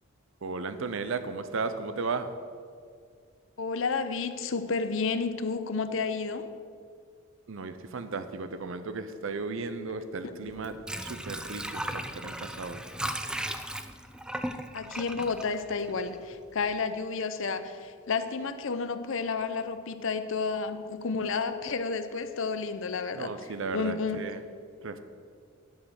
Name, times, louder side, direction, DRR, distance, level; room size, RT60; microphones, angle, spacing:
voice 1, 0.4-2.3 7.5-12.8 23.2-24.4 24.8-25.0, right 4 dB, 65° right, 10 dB, 0.7 m, -35 dB
voice 2, 3.6-6.5 9.9-10.0 10.2-10.3 14.7-23.3 23.7-24.2, left 4 dB, 60° left, 10 dB, 0.7 m, -31 dB
Water / Sink (filling or washing), 10.5-16.3 16.7-16.8, right 1 dB, 5° right, 0.3 m, -36 dB
11.0 x 6.4 x 6.4 m, 2.2 s
head